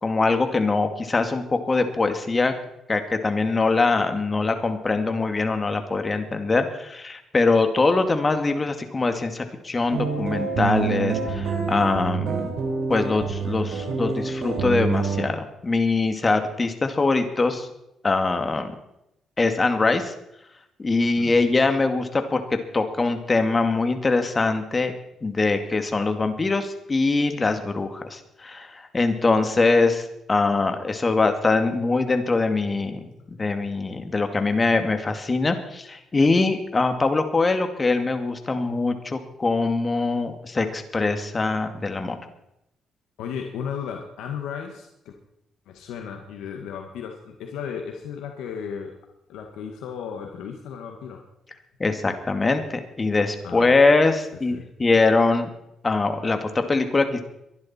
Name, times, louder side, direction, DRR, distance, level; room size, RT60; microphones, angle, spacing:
voice 1, 0.0-2.5 2.9-12.5 12.9-17.7 18.0-18.7 19.4-20.1 20.8-24.9 25.2-33.1 33.4-42.2 51.8-55.5 55.8-57.2, left 3 dB, 30° left, 7 dB, 2.2 m, -23 dB
sound 1, 9.9-15.2, right 5 dB, 80° right, 4.5 m, -27 dB
voice 2, 21.0-21.3 43.2-45.1 45.7-49.0 49.3-51.2 53.4-53.8 54.5-54.7, left 7 dB, 90° left, 3 dB, 1.8 m, -35 dB
23.0 x 11.5 x 4.4 m, 0.82 s
cardioid pair, 90°, 0 cm